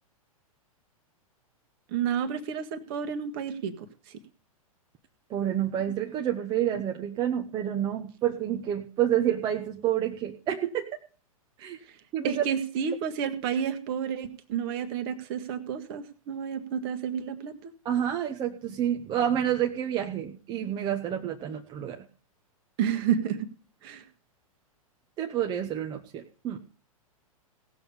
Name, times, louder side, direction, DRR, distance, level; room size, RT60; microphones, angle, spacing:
voice 1, 1.9-4.2 12.2-17.7 22.8-23.5 23.8-24.0, right 8 dB, 40° right, 7 dB, 1.6 m, -30 dB
voice 2, 5.3-10.9 11.6-11.8 12.1-12.4 17.8-22.1 25.2-26.6, right 10 dB, 25° right, 4 dB, 1.0 m, -29 dB
17.5 x 6.9 x 5.4 m, 0.38 s
figure-of-eight pair, 105°, 19 cm